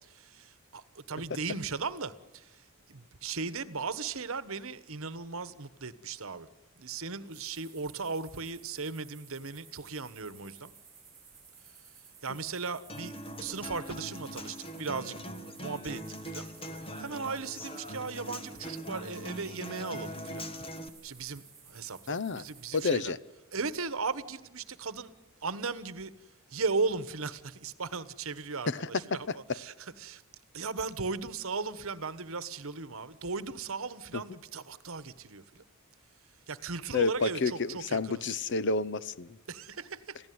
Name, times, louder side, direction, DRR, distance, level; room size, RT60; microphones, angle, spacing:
voice 1, 0.1-2.5 2.9-6.5 6.8-10.7 12.2-13.1 13.4-15.1 15.5-16.0 16.3-16.4 17.0-20.4 21.0-21.4 21.7-23.1 23.5-25.1 25.4-26.1 26.5-28.7 29.1-29.3 29.5-29.7 30.0-30.2 30.5-35.6 36.5-38.3 39.5-40.2, right 4 dB, 65° right, 14 dB, 1.2 m, -37 dB
sound 1, 7.3-23.0, right 6 dB, 15° right, 5.1 m, -56 dB
Human voice / Acoustic guitar, 12.9-20.9, equal, 25° left, 1.8 m, -41 dB
voice 2, 22.1-22.5 22.7-23.2 28.7-29.6 34.1-34.2 36.9-39.4, left 4 dB, 55° left, 17 dB, 0.8 m, -30 dB
27.5 x 16.0 x 9.5 m, 1.1 s
head